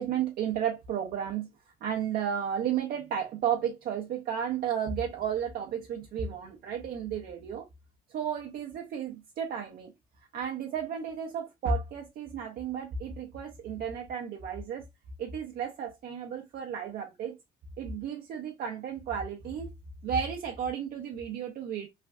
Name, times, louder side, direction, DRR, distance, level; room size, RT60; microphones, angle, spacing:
voice 1, 0.0-1.5 1.8-7.7 8.1-9.9 10.3-14.9 15.2-17.4 17.8-19.7 20.0-21.9, right 8 dB, 60° right, 0.6 m, -33 dB
3.2 x 2.5 x 2.3 m
cardioid pair, 110°, 17 cm